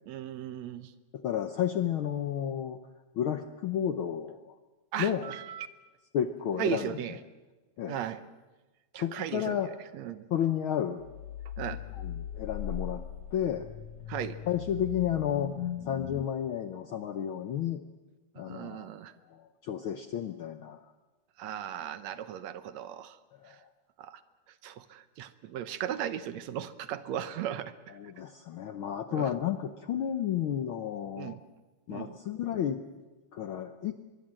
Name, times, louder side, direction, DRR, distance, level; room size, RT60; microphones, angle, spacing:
voice 1, 0.1-0.9 4.9-5.7 6.6-7.2 7.9-8.2 8.9-10.3 11.6-11.8 14.1-14.4 18.4-19.1 21.4-23.2 23.5-23.6 24.0-24.2 24.6-28.0 29.1-29.3 31.2-31.4 31.9-32.2, right 10 dB, 70° right, 13 dB, 2.1 m, -37 dB
voice 2, 1.1-2.8 3.1-4.6 5.0-5.3 6.1-7.0 7.8-8.0 9.0-9.7 10.3-11.1 11.9-13.0 13.3-13.7 14.5-15.6 15.8-17.8 18.4-18.9 19.3-20.8 23.4-23.7 27.9-31.4 31.9-32.8 33.3-34.0, left 9 dB, 70° left, 9 dB, 1.2 m, -32 dB
sound 1, 11.0-16.3, left 9 dB, 90° left, 2.5 m, -39 dB
24.0 x 22.0 x 7.6 m, 1.2 s
omnidirectional pair, 3.3 m